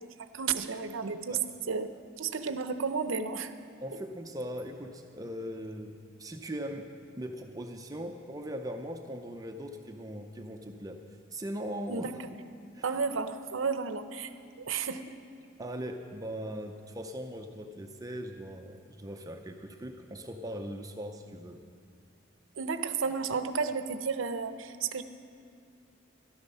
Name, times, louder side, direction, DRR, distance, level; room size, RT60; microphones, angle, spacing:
voice 1, 0.0-1.4 1.7-3.5 11.9-12.3 12.8-15.2 22.6-25.0, right 5 dB, 80° right, 10 dB, 0.7 m, -33 dB
voice 2, 3.8-11.0 11.3-12.1 12.7-12.9 15.6-21.6, equal, 20° right, 4 dB, 0.6 m, -40 dB
13.5 x 12.5 x 5.5 m, 2.4 s
head